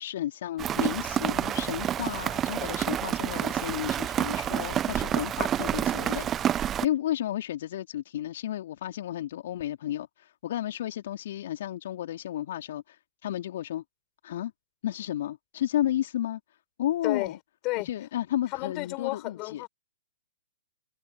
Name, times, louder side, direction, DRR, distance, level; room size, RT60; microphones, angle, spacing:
voice 1, 0.0-13.0 13.2-13.8 14.2-14.5 14.8-16.4 16.8-17.4 17.8-19.6, left 12 dB, 50° left, 3.7 m, -32 dB
Rain, 0.6-6.9, right 10 dB, 20° right, 1.0 m, -28 dB
voice 2, 18.5-19.7, left 23 dB, 30° left, 5.9 m, -31 dB
figure-of-eight pair, 120°, 0 cm